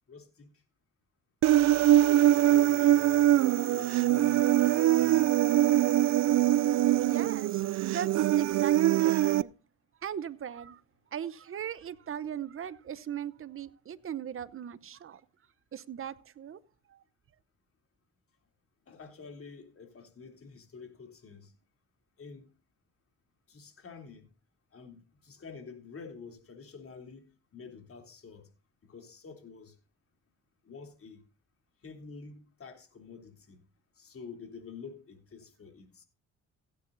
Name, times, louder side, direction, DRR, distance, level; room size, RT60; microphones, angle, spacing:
voice 1, 0.1-0.5 2.2-5.4 18.9-21.5 22.2-22.5 23.5-24.3 24.7-27.3 27.5-28.4 28.8-29.7 30.6-31.2 31.8-33.6 34.0-36.0, left 5 dB, 45° left, 3.3 m, -48 dB
Human voice, 1.4-9.4, right 13 dB, 60° right, 0.5 m, -23 dB
voice 2, 7.0-9.5 10.0-10.8 11.1-15.2 15.7-16.6 16.9-17.0, right 9 dB, 45° right, 0.9 m, -39 dB
16.5 x 9.3 x 2.7 m
cardioid pair, 90°, 30 cm